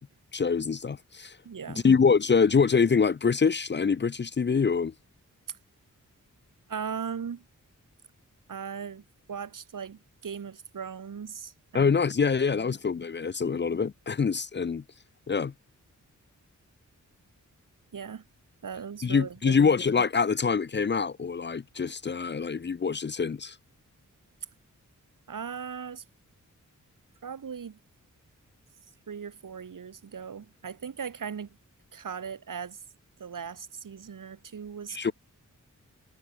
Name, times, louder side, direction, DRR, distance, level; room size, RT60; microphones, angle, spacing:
voice 1, 0.3-1.4 1.8-4.9 11.7-14.8 15.3-15.5 19.0-23.6 34.9-35.1, left 5 dB, 35° left, 0.6 m, -25 dB
voice 2, 1.4-1.9 6.7-7.4 8.5-11.9 17.9-18.2 18.6-19.7 25.3-26.0 27.2-27.8 29.1-31.6 31.9-32.8 33.2-35.1, right 7 dB, 75° right, 4.4 m, -38 dB
wide cardioid pair, 130°, 32 cm